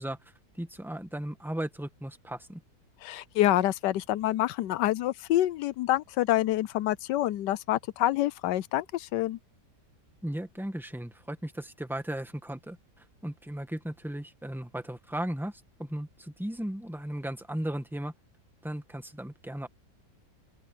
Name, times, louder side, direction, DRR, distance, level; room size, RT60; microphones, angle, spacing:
voice 1, 0.0-2.6 10.2-12.8 13.2-18.1 18.6-19.7, right 1 dB, ahead, 1.5 m, -36 dB
voice 2, 3.0-9.4, left 14 dB, 85° left, 1.3 m, -27 dB
open air
omnidirectional pair, 1.8 m